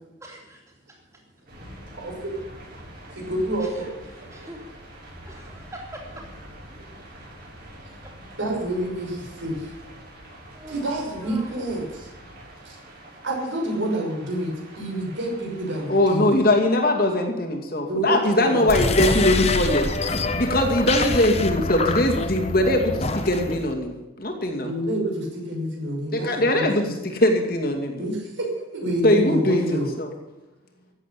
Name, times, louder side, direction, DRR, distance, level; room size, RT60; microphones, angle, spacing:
voice 1, 0.2-0.6 3.8-3.9 4.3-4.6 5.3-6.0 10.5-11.7, right 1 dB, 15° right, -1 dB, 3.5 m, -41 dB
sound 1, 1.5-16.2, right 1 dB, 45° right, 7.3 m, -45 dB
voice 2, 2.0-2.4 3.1-3.9 4.4-4.5 8.4-9.7 10.7-12.1 12.6-12.8 13.2-16.3 17.9-18.2 18.4-18.7 24.6-26.9 28.0-29.9, right 1 dB, 75° right, 0 dB, 5.9 m, -28 dB
voice 3, 15.9-19.9 20.3-24.7 26.1-28.0 29.0-30.1, left 1 dB, 50° left, 1 dB, 2.5 m, -21 dB
sound 2, 18.6-23.7, left 3 dB, 30° left, 1.2 m, -25 dB
15.0 x 8.3 x 10.0 m, 1.0 s
head